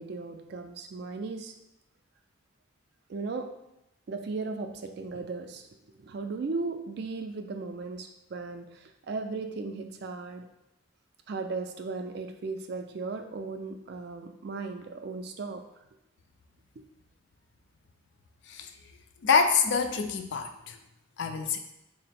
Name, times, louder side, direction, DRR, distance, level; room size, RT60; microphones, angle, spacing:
voice 1, 0.0-1.5 3.1-3.6 4.1-5.7 6.0-10.5 11.3-15.7, right 3 dB, 50° right, 6 dB, 0.3 m, -36 dB
voice 2, 19.2-20.8 21.2-21.6, left 5 dB, 55° left, 6 dB, 0.3 m, -26 dB
3.7 x 2.0 x 4.1 m, 0.90 s
head